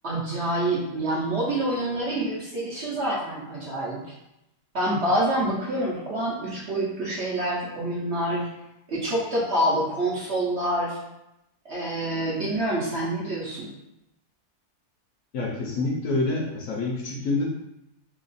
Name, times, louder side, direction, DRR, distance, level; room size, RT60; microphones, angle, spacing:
voice 1, 0.0-4.0 4.7-8.5 8.9-11.0 11.6-13.7, right 1 dB, 50° right, -6 dB, 0.9 m, -27 dB
voice 2, 15.3-17.4, left 2 dB, 65° left, -2 dB, 0.9 m, -27 dB
3.0 x 2.4 x 3.9 m, 0.87 s
omnidirectional pair, 1.7 m